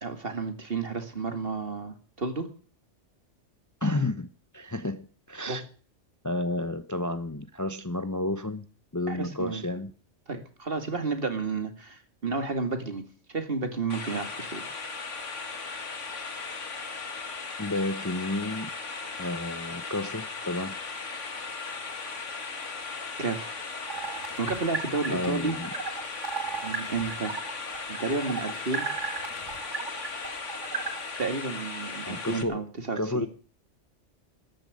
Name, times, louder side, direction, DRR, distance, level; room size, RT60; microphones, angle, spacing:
voice 1, 0.0-2.5 5.5-5.6 9.1-9.6 10.3-14.6 23.2-23.5 24.4-25.6 25.8-26.2 26.6-27.3 27.9-28.9 31.2-33.3, right 4 dB, 50° right, 2.5 m, -31 dB
voice 2, 3.8-4.3 4.5-5.6 6.2-8.6 8.9-9.9 17.6-18.7 19.2-20.7 25.1-25.7 32.0-32.6 33.0-33.3, left 2 dB, 15° left, 0.8 m, -31 dB
sound 1, 13.9-32.4, left 4 dB, 85° left, 2.2 m, -37 dB
sound 2, 23.9-31.3, right 5 dB, 75° right, 2.2 m, -36 dB
13.5 x 10.5 x 9.5 m
omnidirectional pair, 1.2 m